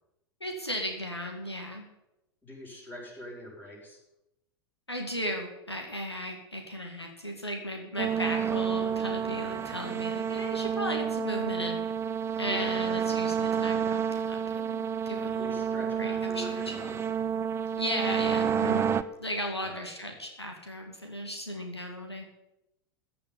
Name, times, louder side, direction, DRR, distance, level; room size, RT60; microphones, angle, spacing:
voice 1, 0.4-1.9 4.9-11.8 12.4-15.6 16.0-16.7 17.8-22.3, equal, 90° left, 2 dB, 2.3 m, -36 dB
voice 2, 2.4-4.0 12.4-13.1 15.4-17.0 19.6-19.9, left 1 dB, 15° left, -3 dB, 6.5 m, -44 dB
sound 1, 8.0-19.0, right 7 dB, 20° right, 0.7 m, -29 dB
15.5 x 6.0 x 9.7 m, 0.88 s
figure-of-eight pair, 90°, 13 cm